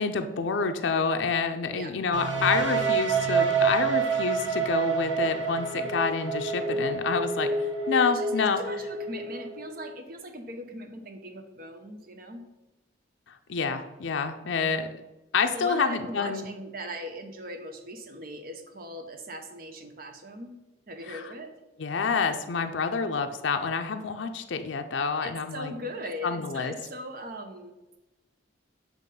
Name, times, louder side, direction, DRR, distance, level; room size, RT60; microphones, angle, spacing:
voice 1, 0.0-8.6 13.5-14.9 15.3-16.5 21.1-21.2 21.8-25.7 26.2-26.7, left 5 dB, 75° left, 6 dB, 0.5 m, -28 dB
sound 1, 2.1-9.9, right 4 dB, 80° right, 1.1 m, -28 dB
voice 2, 8.1-12.5 15.5-20.6 20.9-21.5 25.2-27.7, equal, 50° right, 6 dB, 0.8 m, -39 dB
7.5 x 3.0 x 5.3 m, 1.1 s
head